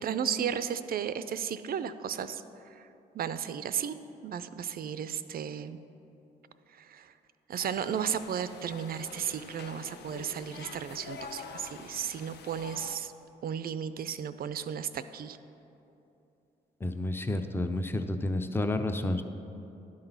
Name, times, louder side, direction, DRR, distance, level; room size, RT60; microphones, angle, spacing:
voice 1, 0.0-2.4 2.8-2.9 3.1-5.8 6.8-7.1 7.5-13.1 13.4-15.4, right 8 dB, 45° right, 13 dB, 0.4 m, -34 dB
sound 1, 7.6-13.0, left 5 dB, 55° left, 0.6 m, -46 dB
voice 2, 16.8-19.2, left 2 dB, 10° left, 8 dB, 0.6 m, -30 dB
11.5 x 3.9 x 5.4 m, 2.9 s
hypercardioid pair, 45°, 21 cm